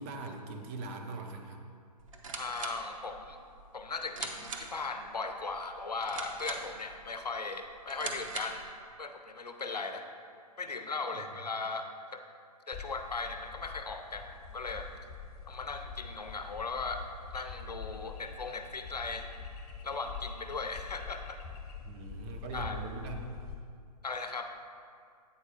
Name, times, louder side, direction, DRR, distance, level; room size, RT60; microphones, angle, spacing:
voice 1, 0.0-1.6 11.1-11.3 21.8-23.4, right 3 dB, 20° right, 3 dB, 0.5 m, -41 dB
sound 1, 2.0-8.7, right 4 dB, 55° right, 0.9 m, -43 dB
voice 2, 2.4-3.4 3.7-8.6 9.0-10.1 10.6-12.2 12.7-14.9 15.5-17.1 17.3-19.3 19.8-21.4 22.5-22.8 24.0-24.5, left 3 dB, 80° left, 6 dB, 0.7 m, -38 dB
sound 2, 12.7-23.5, left 5 dB, 15° left, 0.8 m, -45 dB
8.5 x 4.4 x 4.9 m, 2.2 s
figure-of-eight pair, 125°, 20 cm